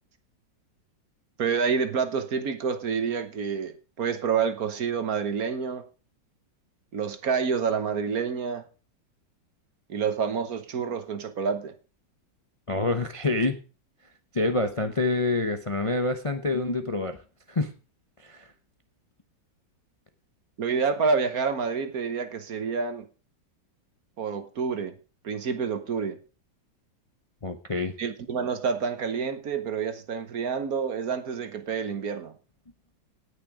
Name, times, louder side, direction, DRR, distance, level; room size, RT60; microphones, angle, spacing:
voice 1, 1.4-5.8 6.9-8.6 9.9-11.7 20.6-23.1 24.2-24.9 25.2-26.2 28.0-32.3, right 5 dB, 55° right, 10 dB, 1.5 m, -28 dB
voice 2, 12.7-13.6 14.3-17.2 17.5-17.7 18.2-18.5 27.4-27.9, left 2 dB, 25° left, 7 dB, 0.7 m, -27 dB
18.0 x 6.7 x 4.9 m, 0.35 s
omnidirectional pair, 2.0 m